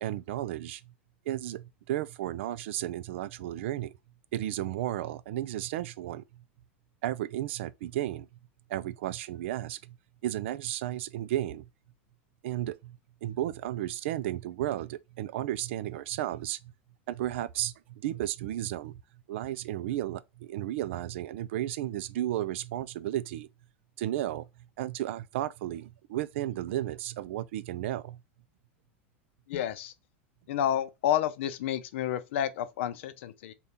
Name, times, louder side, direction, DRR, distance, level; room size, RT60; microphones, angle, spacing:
voice 1, 0.0-0.8 1.3-3.9 4.3-6.2 7.0-8.3 8.7-9.9 10.2-11.7 12.4-16.6 17.1-19.0 19.3-23.5 24.0-24.5 24.8-28.2, right 13 dB, 75° right, 0.4 m, -33 dB
voice 2, 29.5-29.9 30.5-33.5, left 10 dB, 75° left, 0.5 m, -30 dB
3.5 x 2.3 x 4.1 m
supercardioid pair, 120°, 7 cm